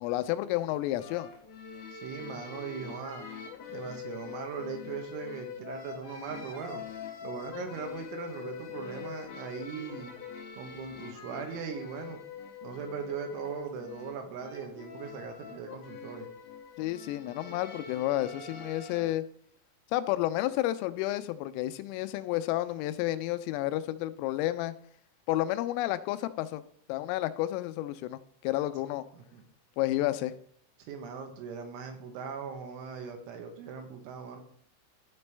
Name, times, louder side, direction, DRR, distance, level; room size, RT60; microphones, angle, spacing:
voice 1, 0.0-1.3 16.8-19.2 19.9-24.7 25.3-26.6 26.9-29.0 29.8-30.3, left 15 dB, 90° left, 11 dB, 3.2 m, -31 dB
sound 1, 1.0-19.1, left 6 dB, 70° left, 3.1 m, -44 dB
voice 2, 1.9-3.3 3.7-6.8 7.2-10.1 10.5-12.2 12.6-16.3 29.1-29.4 30.8-34.4, right 6 dB, 80° right, 5 dB, 3.3 m, -39 dB
13.5 x 5.2 x 3.3 m, 0.64 s
omnidirectional pair, 5.8 m